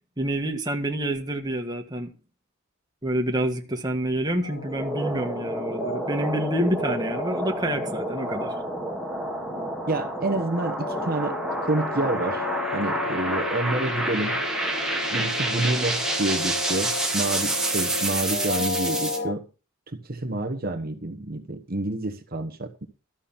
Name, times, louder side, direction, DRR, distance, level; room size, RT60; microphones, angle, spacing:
voice 1, 0.2-2.1 3.0-8.5, right 1 dB, 20° right, 1.5 m, -27 dB
sound 1, 4.4-19.3, left 3 dB, 45° left, 1.0 m, -35 dB
sound 2, 4.6-19.2, right 1 dB, 5° right, 1.7 m, -29 dB
voice 2, 9.9-11.4 11.6-12.5 12.7-14.4 15.1-19.5 19.9-22.8, right 2 dB, 45° right, 1.3 m, -28 dB
13.0 x 6.1 x 7.3 m
head